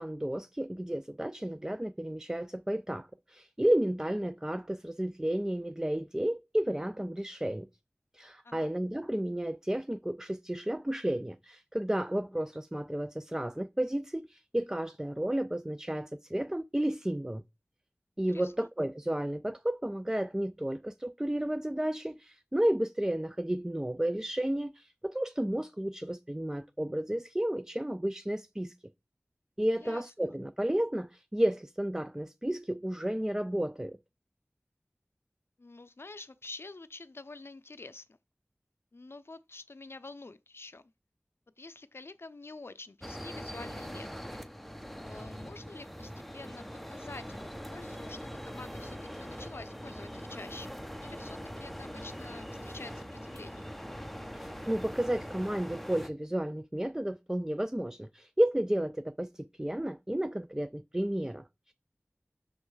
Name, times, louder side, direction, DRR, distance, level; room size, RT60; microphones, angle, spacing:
voice 1, 0.0-7.7 8.1-17.4 18.2-28.7 29.6-34.0 54.3-61.7, right 1 dB, 15° right, 0.3 m, -32 dB
voice 2, 18.3-18.7 29.8-30.3 35.6-38.1 38.9-40.9 41.6-44.4 45.0-50.7 51.0-53.7, left 3 dB, 70° left, 0.5 m, -48 dB
sound 1, 43.0-56.1, equal, ahead, 0.7 m, -42 dB
6.4 x 3.1 x 4.7 m
wide cardioid pair, 45°, 4 cm